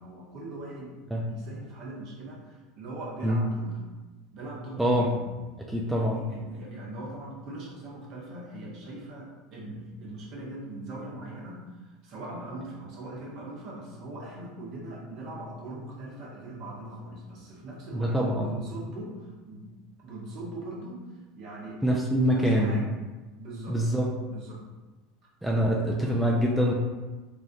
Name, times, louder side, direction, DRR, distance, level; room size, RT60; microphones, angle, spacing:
voice 1, 0.0-3.8 4.3-5.3 5.9-19.7 20.0-21.0 21.4-21.8 22.2-22.9 23.4-23.8 24.3-24.6, right 1 dB, 45° right, -3 dB, 0.9 m, -40 dB
voice 2, 5.7-6.2 17.9-18.5 21.8-22.8 23.7-24.1 25.4-26.7, equal, 5° right, -2 dB, 0.4 m, -24 dB
4.0 x 2.4 x 2.5 m, 1.2 s
figure-of-eight pair, 75°, 0 cm